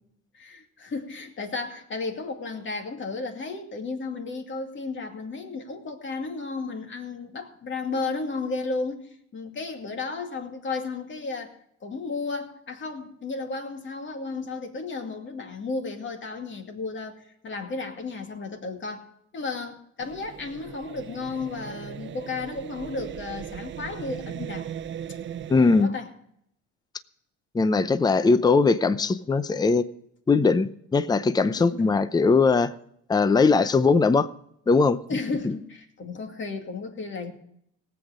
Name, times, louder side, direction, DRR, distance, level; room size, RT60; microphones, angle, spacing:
voice 1, 0.3-11.6 11.8-24.7 25.8-26.1 31.6-32.0 35.1-37.3, left 3 dB, 40° left, 4 dB, 2.4 m, -33 dB
sound 1, 20.0-25.8, right 9 dB, 40° right, 0.6 m, -38 dB
voice 2, 25.5-25.9 27.5-29.8 30.3-32.7 33.1-34.3 34.7-35.0, left 4 dB, 15° left, 14 dB, 0.6 m, -20 dB
18.5 x 8.2 x 5.0 m, 0.73 s
cardioid pair, 105°, 31 cm